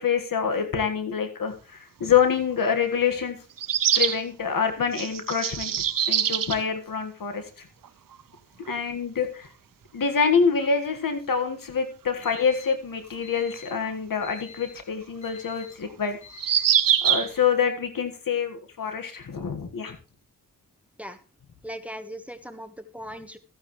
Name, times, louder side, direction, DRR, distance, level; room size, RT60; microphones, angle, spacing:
voice 1, 0.0-3.4 3.9-5.7 6.1-7.4 8.7-9.5 9.9-16.2 17.0-20.0, left 6 dB, 85° left, 7 dB, 1.7 m, -26 dB
sound 1, 2.1-2.2 3.6-4.2 4.9-6.6 7.8-7.9 8.1-8.2 10.6-10.7 13.9-14.0 16.3-17.3, right 9 dB, 90° right, 0.7 m, -23 dB
Alarm, 12.0-17.0, left 7 dB, 65° left, 7.1 m, -49 dB
voice 2, 21.6-23.4, equal, 5° right, 9 dB, 1.3 m, -38 dB
14.5 x 9.5 x 3.2 m, 0.36 s
cardioid pair, 55°, 33 cm